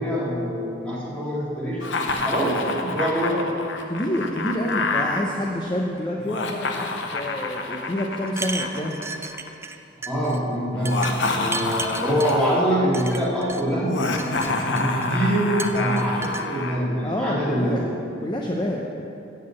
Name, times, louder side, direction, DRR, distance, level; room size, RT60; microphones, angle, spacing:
voice 1, 0.0-3.4 10.1-13.9 14.6-17.9, equal, 5° left, -7 dB, 2.5 m, -24 dB
Laughter, 1.8-5.2 6.2-9.5 10.7-12.7 13.8-16.8, left 3 dB, 75° left, 0.9 m, -28 dB
voice 2, 3.9-9.0 17.0-17.8 18.2-18.9, equal, 25° left, -1 dB, 0.7 m, -27 dB
sound 1, 8.3-9.8 10.0-10.4 10.8-12.4 12.9-13.6 14.0-15.1 15.6-16.5, right 3 dB, 15° right, 0.4 m, -34 dB
8.0 x 7.6 x 7.5 m, 2.7 s
head